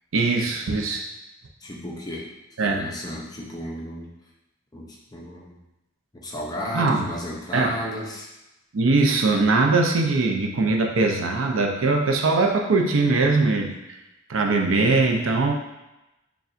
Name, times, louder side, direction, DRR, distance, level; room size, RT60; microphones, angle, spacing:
voice 1, 0.1-1.0 2.6-2.9 6.7-7.0 7.5-7.7 8.7-13.7 14.3-15.5, right 3 dB, 85° right, 2 dB, 0.5 m, -21 dB
voice 2, 1.6-2.3 2.6-4.1 4.7-5.6 6.2-8.3, left 1 dB, 20° left, -2 dB, 0.5 m, -33 dB
6.8 x 2.3 x 2.5 m, 0.96 s
head